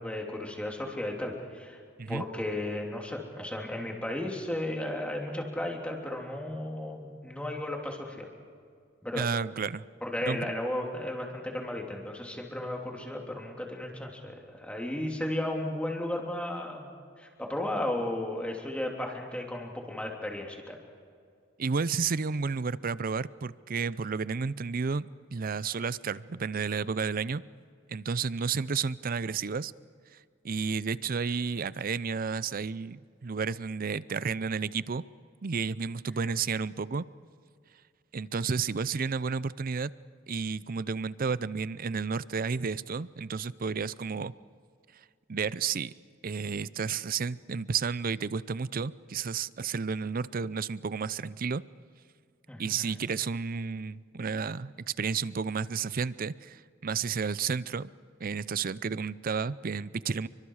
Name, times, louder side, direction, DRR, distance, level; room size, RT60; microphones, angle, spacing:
voice 1, 0.0-1.8 2.1-8.3 9.0-9.3 10.0-16.9 17.2-20.8 52.5-53.0, left 1 dB, 5° left, 0 dB, 3.2 m, -34 dB
voice 2, 9.1-9.8 10.3-10.5 21.6-27.4 27.9-29.7 30.4-35.0 35.4-37.0 38.1-39.9 40.3-44.3 45.3-45.9 46.2-51.6 52.6-57.9 58.2-60.3, right 5 dB, 50° right, 18 dB, 0.5 m, -31 dB
29.5 x 24.0 x 4.9 m, 2.2 s
head